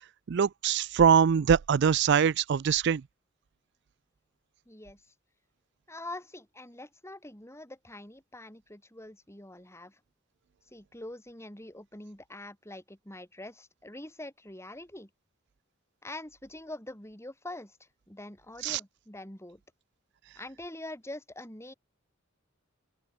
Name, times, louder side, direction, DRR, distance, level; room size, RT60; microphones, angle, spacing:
voice 1, 0.3-3.0 18.6-18.8, right 7 dB, 60° right, 0.4 m, -23 dB
voice 2, 4.7-5.0 5.9-10.0 10.7-15.1 16.0-19.6 20.4-21.7, left 1 dB, 15° left, 5.7 m, -44 dB
open air
head